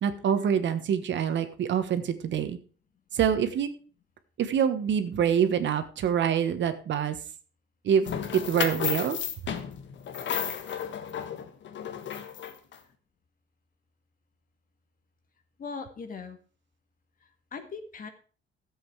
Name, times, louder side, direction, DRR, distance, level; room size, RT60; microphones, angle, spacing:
voice 1, 0.0-2.6 3.1-3.7 4.4-7.2 7.8-9.2, right 8 dB, 60° right, 10 dB, 1.3 m, -26 dB
sound 1, 8.1-12.8, left 8 dB, 60° left, 1.5 m, -33 dB
voice 2, 15.6-16.4 17.2-18.1, left 5 dB, 40° left, 7 dB, 1.8 m, -40 dB
13.5 x 7.9 x 4.7 m, 0.38 s
cardioid pair, 135°, 21 cm